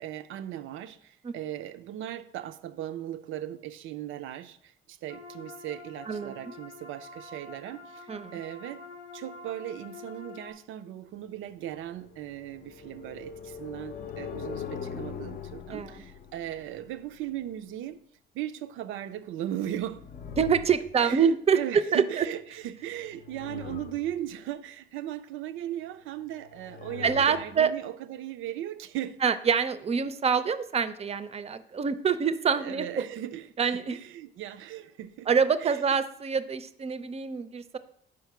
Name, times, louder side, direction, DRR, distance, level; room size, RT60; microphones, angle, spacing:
voice 1, 0.0-8.8 9.1-18.0 18.3-20.1 21.0-29.2 32.6-35.3 35.6-35.8, right 12 dB, 85° right, 0.4 m, -38 dB
sound 1, 5.1-10.5, left 3 dB, 90° left, 0.7 m, -47 dB
sound 2, 11.8-17.5 19.5-21.3 22.9-24.4 26.3-27.6, left 7 dB, 50° left, 0.5 m, -42 dB
voice 2, 20.4-21.6 21.9-22.2 27.0-27.7 29.2-33.1 33.6-34.0 35.3-37.8, right 6 dB, 30° right, 0.5 m, -26 dB
4.9 x 4.6 x 5.9 m
cardioid pair, 90°, 20 cm